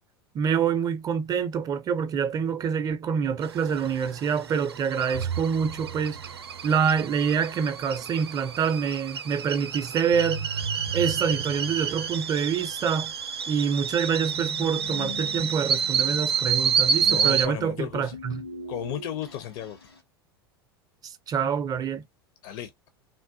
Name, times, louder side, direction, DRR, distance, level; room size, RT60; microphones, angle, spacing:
voice 1, 0.3-6.2 6.6-10.5 10.9-13.1 13.5-18.4 21.0-22.0, right 7 dB, 30° right, 0.6 m, -26 dB
sound 1, 3.4-17.5, right 7 dB, 80° right, 0.5 m, -29 dB
sound 2, 5.1-7.3 10.1-13.2 14.1-17.1 18.1-20.0, right 4 dB, 90° left, 1.3 m, -38 dB
voice 2, 17.0-18.2 18.7-19.8 22.4-22.9, left 12 dB, 50° left, 0.5 m, -34 dB
3.5 x 2.3 x 2.5 m
figure-of-eight pair, 85°, 13 cm